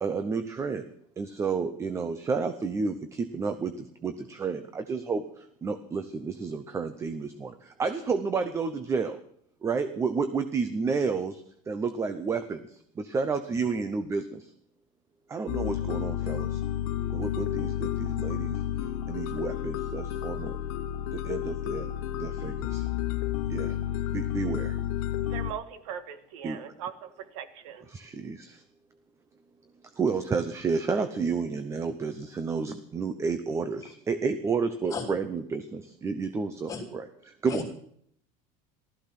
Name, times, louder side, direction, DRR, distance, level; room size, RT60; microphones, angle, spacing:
voice 1, 0.0-0.9 1.2-9.2 9.6-14.5 15.3-16.6 17.1-18.6 19.1-20.6 21.1-22.9 23.5-23.8 24.1-24.8 26.4-26.6 27.9-28.6 30.0-37.1 37.4-37.7, right 5 dB, 15° right, 9 dB, 0.7 m, -31 dB
sound 1, 15.5-25.5, left 11 dB, 80° left, 1.2 m, -31 dB
voice 2, 25.2-27.9, right 8 dB, 85° right, 9 dB, 1.8 m, -40 dB
voice 3, 33.8-33.9 34.9-35.1 36.7-36.8 37.5-37.7, left 4 dB, 20° left, 1 dB, 3.2 m, -35 dB
15.5 x 13.5 x 5.9 m, 0.66 s
cardioid pair, 170°, 18 cm